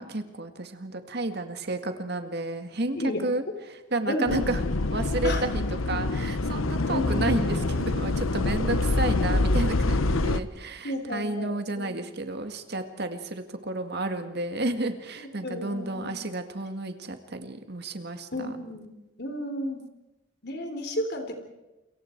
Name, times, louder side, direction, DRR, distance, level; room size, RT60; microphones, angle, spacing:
voice 1, 0.0-4.6 4.9-18.6, right 2 dB, 50° right, 7 dB, 2.0 m, -31 dB
voice 2, 4.1-4.4 5.2-5.4 6.9-7.4 10.8-11.9 15.4-16.2 18.3-18.9 19.2-19.8 20.4-21.4, left 1 dB, 55° left, 5 dB, 3.7 m, -32 dB
sound 1, 4.3-10.4, left 2 dB, 85° left, 1.0 m, -26 dB
29.0 x 23.0 x 4.6 m, 1.0 s
head